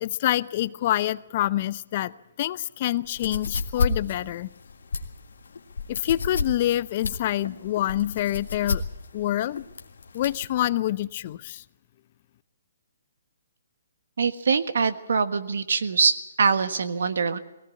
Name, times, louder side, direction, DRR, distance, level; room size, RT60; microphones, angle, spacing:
voice 1, 0.0-2.1 2.4-4.5 5.9-8.8 9.1-9.6 10.1-11.6, left 13 dB, 40° left, 0.7 m, -26 dB
sound 1, 3.0-10.5, left 4 dB, 75° left, 1.9 m, -30 dB
voice 2, 14.2-17.4, right 5 dB, 70° right, 1.5 m, -23 dB
20.0 x 17.5 x 8.4 m
hypercardioid pair, 140°, 0 cm